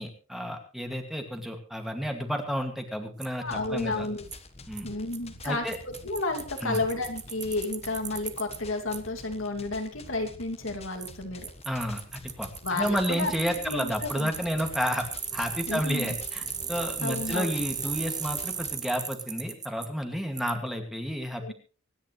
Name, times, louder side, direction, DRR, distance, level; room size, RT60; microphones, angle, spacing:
voice 1, 0.0-4.1 4.7-4.9 5.4-5.8 6.6-6.8 11.7-15.1 15.3-21.5, equal, ahead, 4 dB, 2.2 m, -31 dB
Bicycle, 3.2-3.3 4.3-4.4 4.8-4.9 5.1-5.2 5.4-5.5 5.7-8.6 8.9-9.0 11.0-11.1 11.4-19.9 20.4-20.5, right 6 dB, 20° right, 1.1 m, -36 dB
voice 2, 3.4-4.2 4.8-11.5 12.6-13.3 13.6-14.3 15.7-16.2 17.0-17.6 21.4-21.5, left 2 dB, 70° left, 4 dB, 2.6 m, -32 dB
sound 1, 3.4-18.7, left 2 dB, 30° left, 1.3 m, -48 dB
25.0 x 10.5 x 3.2 m, 0.35 s
head